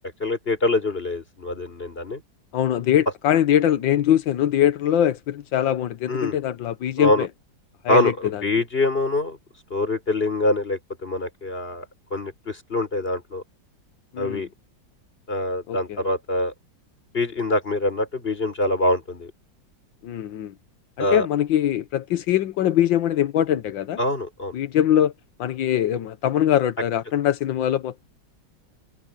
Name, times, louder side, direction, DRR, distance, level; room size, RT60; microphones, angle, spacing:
voice 1, 0.2-2.2 6.1-6.4 7.0-7.3 7.9-9.4 9.7-11.8 12.1-13.4 14.2-14.5 15.3-16.5 17.1-19.3 21.0-21.3 24.0-24.5, left 2 dB, 30° left, 4.4 m, -24 dB
voice 2, 2.5-7.3 7.8-8.4 14.1-14.5 15.7-16.1 20.0-20.5 21.0-24.0 24.5-25.1 25.4-28.1, left 11 dB, 90° left, 1.7 m, -22 dB
omnidirectional pair, 2.0 m